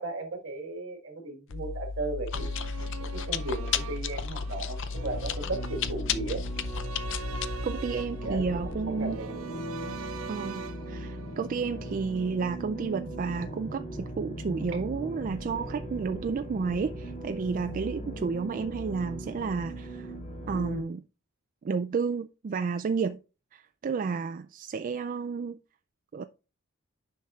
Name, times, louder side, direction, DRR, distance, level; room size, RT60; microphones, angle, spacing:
voice 1, 0.0-2.5 3.1-6.4 8.2-9.7 14.7-14.8, right 2 dB, 65° right, 1.6 m, -36 dB
Chewing mastication, 1.5-8.7, left 5 dB, 65° left, 0.5 m, -34 dB
sound 1, 2.3-12.5 12.8-12.9, right 5 dB, 85° right, 0.6 m, -44 dB
sound 2, 4.9-20.8, right 1 dB, 35° left, 1.9 m, -39 dB
voice 2, 7.6-9.2 10.3-20.1 20.5-21.0 21.6-23.2 23.5-25.6 26.1-26.2, right 5 dB, 40° right, 0.3 m, -31 dB
9.2 x 5.8 x 2.4 m
head